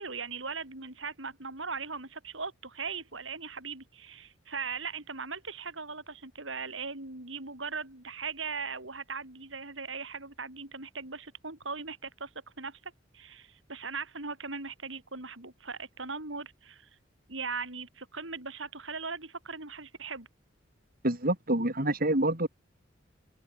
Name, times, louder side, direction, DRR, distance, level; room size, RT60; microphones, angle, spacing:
voice 1, 0.0-12.3 12.6-16.9 17.3-20.3, right 5 dB, 85° right, 5.8 m, -39 dB
voice 2, 21.0-22.5, right 1 dB, 50° right, 5.9 m, -27 dB
head